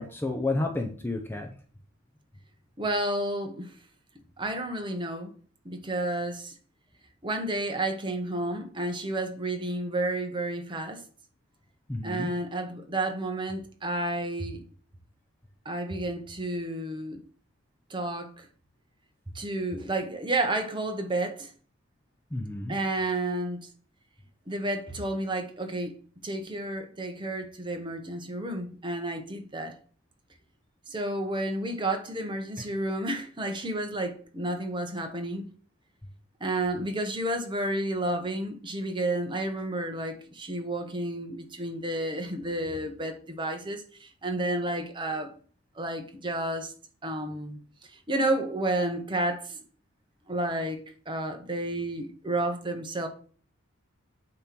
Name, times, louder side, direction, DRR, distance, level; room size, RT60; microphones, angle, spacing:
voice 1, 0.0-1.5 11.9-12.3 22.3-22.8, left 2 dB, 10° left, 0.6 m, -31 dB
voice 2, 2.8-3.7 4.4-5.3 5.6-6.5 7.2-11.0 12.0-14.6 15.6-17.2 17.9-18.5 19.3-21.5 22.7-23.7 24.5-26.0 26.2-29.8 30.9-35.4 36.4-45.3 45.8-46.7 47.0-47.6 47.9-49.6 50.3-50.8 51.1-53.1, right 1 dB, 20° right, 0.9 m, -31 dB
8.6 x 3.0 x 5.9 m
head